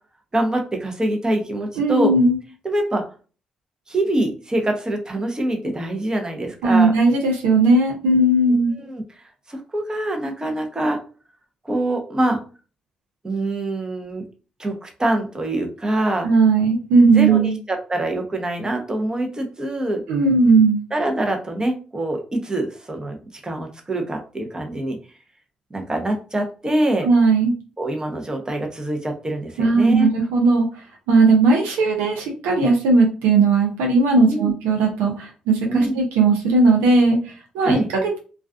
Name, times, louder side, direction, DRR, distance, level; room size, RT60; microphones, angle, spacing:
voice 1, 0.3-2.1 2.6-3.0 3.9-6.9 8.8-11.0 11.6-12.4 13.2-14.2 14.6-16.3 17.1-20.0 20.9-25.0 25.7-27.1 27.8-30.1 34.3-34.5 35.7-36.0 37.6-37.9, right 1 dB, 25° right, 3 dB, 0.7 m, -24 dB
voice 2, 1.8-2.4 6.6-8.7 16.2-17.6 20.1-20.8 27.0-27.5 29.6-30.7 31.1-38.2, right 3 dB, 90° right, 0 dB, 0.6 m, -17 dB
2.4 x 2.3 x 2.3 m, 0.36 s
supercardioid pair, 50°, 3 cm